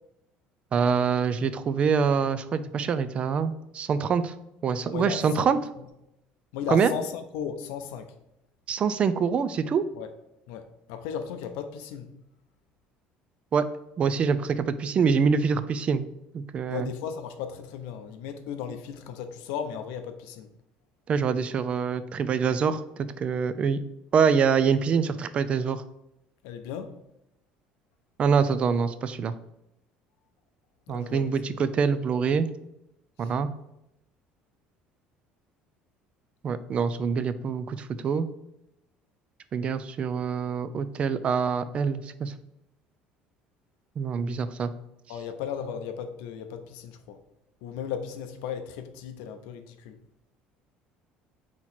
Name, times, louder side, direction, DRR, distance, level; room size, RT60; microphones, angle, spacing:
voice 1, 0.7-4.3 4.6-5.6 6.7-6.9 8.7-9.8 13.5-13.6 14.0-16.1 16.3-16.9 21.1-22.8 23.2-23.8 24.1-25.8 28.2-29.3 30.9-32.5 33.2-33.5 36.4-38.3 39.5-42.3 44.0-44.7, right 6 dB, 35° right, 13 dB, 0.3 m, -25 dB
voice 2, 4.9-5.5 6.5-8.2 9.9-10.1 10.5-12.1 14.0-14.2 16.7-20.5 26.4-27.0 30.9-31.5 33.2-33.3 45.1-47.2 47.6-50.0, left 8 dB, 90° left, 8 dB, 0.5 m, -36 dB
4.0 x 3.0 x 4.2 m, 0.84 s
cardioid pair, 125°, 3 cm